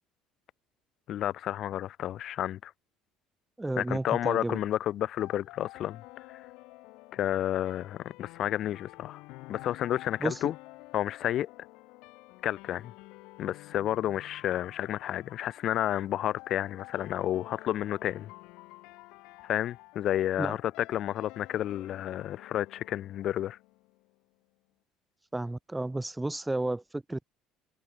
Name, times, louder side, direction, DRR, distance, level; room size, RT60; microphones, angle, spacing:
voice 1, 1.1-2.7 3.8-6.0 6.3-6.4 7.1-9.2 9.5-10.5 10.9-11.5 12.4-12.9 13.4-18.3 19.4-23.6, left 12 dB, 45° left, 3.7 m, -31 dB
voice 2, 3.6-4.6 10.2-10.4 20.4-20.6 25.3-27.2, right 2 dB, 5° right, 1.6 m, -32 dB
sound 1, 5.2-24.1, left 23 dB, 75° left, 6.3 m, -50 dB
cardioid pair, 150°, 0 cm